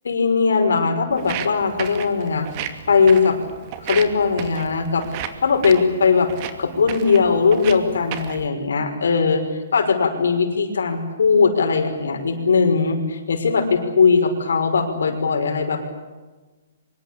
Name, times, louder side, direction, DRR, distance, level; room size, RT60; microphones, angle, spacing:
voice 1, 0.0-3.4 3.8-5.1 5.4-6.3 6.6-9.4 9.7-15.9, left 5 dB, 85° left, 5 dB, 5.8 m, -19 dB
Walk footsteps, 1.1-8.5, right 9 dB, 35° right, 2.5 m, -34 dB
24.5 x 23.0 x 8.7 m, 1.2 s
hypercardioid pair, 150°, 0 cm